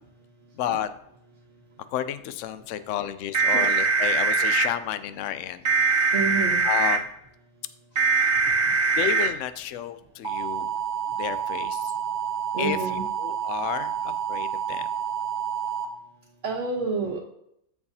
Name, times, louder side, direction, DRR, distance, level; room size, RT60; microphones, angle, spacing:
voice 1, 0.6-0.9 1.9-5.7 6.6-7.1 8.0-8.3 8.9-10.7 11.2-11.9 12.6-12.8 13.2-14.9, left 11 dB, 75° left, 12 dB, 0.9 m, -31 dB
sound 1, 3.3-4.7 5.6-7.0 8.0-9.3 10.2-15.8, right 5 dB, 50° right, 1.1 m, -24 dB
voice 2, 6.1-6.6 12.5-13.0 16.4-17.2, right 4 dB, 65° right, -3 dB, 1.3 m, -28 dB
14.0 x 4.7 x 2.7 m, 0.75 s
omnidirectional pair, 1.3 m